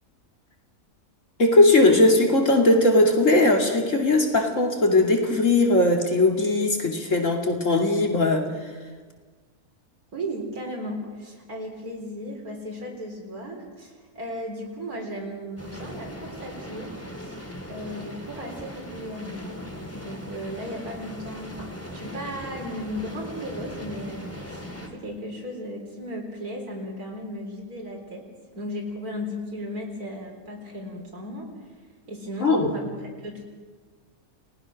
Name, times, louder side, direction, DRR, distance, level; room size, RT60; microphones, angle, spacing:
voice 1, 1.4-8.5 32.4-32.7, left 2 dB, 60° left, 2 dB, 2.9 m, -19 dB
voice 2, 10.1-17.4 17.7-19.6 19.9-24.7 24.9-28.2 28.5-31.7 32.1-33.4, equal, 85° right, -1 dB, 4.5 m, -35 dB
sound 1, 15.6-24.9, equal, 10° left, 3.0 m, -39 dB
30.0 x 19.5 x 6.4 m, 1.4 s
omnidirectional pair, 1.5 m